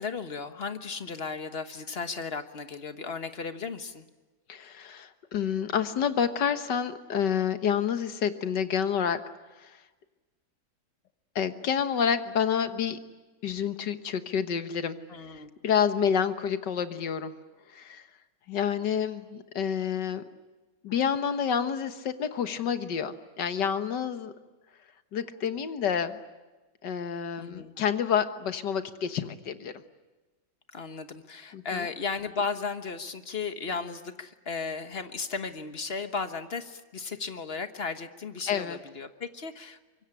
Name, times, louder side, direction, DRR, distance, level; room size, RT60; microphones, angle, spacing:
voice 1, 0.0-4.0 15.1-15.5 27.4-27.7 30.7-39.8, left 5 dB, 40° left, 9 dB, 1.4 m, -35 dB
voice 2, 4.5-9.2 9.6-9.8 11.4-13.0 13.4-15.0 15.3-17.3 17.7-18.1 18.5-20.2 20.8-24.3 25.1-26.2 26.8-29.7 31.5-31.8 38.5-38.8, left 7 dB, 75° left, 10 dB, 1.9 m, -28 dB
25.0 x 23.0 x 10.0 m, 1.2 s
omnidirectional pair, 1.9 m